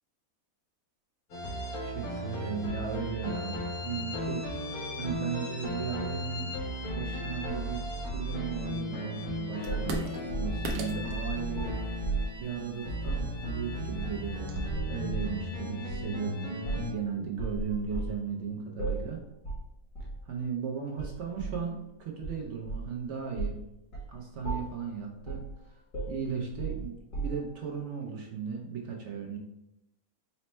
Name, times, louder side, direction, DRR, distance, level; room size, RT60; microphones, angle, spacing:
sound 1, 1.3-16.9, left 1 dB, 85° left, 1.4 m, -36 dB
voice 1, 1.8-6.5 6.9-11.7 12.4-19.2 20.2-23.6 24.1-25.8 26.1-29.4, right 6 dB, 65° right, 0 dB, 0.8 m, -36 dB
sound 2, 9.6-14.8, right 3 dB, 80° right, 1.1 m, -40 dB
sound 3, 9.7-12.4 13.0-13.3 14.0-14.4 14.7-15.4 15.9-16.1 16.6-17.0 17.4-18.2 18.8-19.1 19.4-19.7 20.0-20.2 21.0-21.6 22.2-23.0 23.4-23.6 23.9-24.1 24.4-24.8 25.3-25.5 25.9-27.6, right 3 dB, 65° left, 1.6 m, -35 dB
4.3 x 2.0 x 4.2 m, 0.83 s
omnidirectional pair, 1.6 m